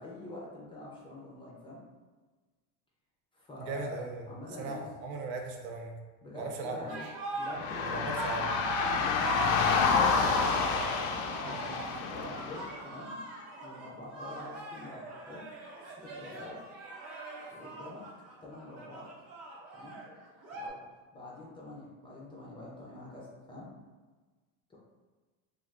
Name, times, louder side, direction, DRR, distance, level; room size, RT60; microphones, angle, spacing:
voice 1, 0.0-1.8 3.3-4.9 6.2-7.0 7.3-10.9 11.3-13.2 13.6-15.5 16.0-16.6 17.5-18.0 18.4-19.1 19.7-20.0 20.5-20.8 21.1-23.7 24.7-24.8, left 2 dB, 15° left, -5 dB, 0.4 m, -45 dB
voice 2, 3.6-4.2 4.6-5.9 6.4-6.8 7.9-8.5, right 3 dB, 75° right, 3 dB, 0.6 m, -38 dB
sound 1, 6.9-20.7, right 2 dB, 40° right, 0.7 m, -40 dB
sound 2, 7.5-12.7, left 5 dB, 80° left, 0.5 m, -29 dB
3.2 x 2.3 x 2.4 m, 1.3 s
supercardioid pair, 135°, 39 cm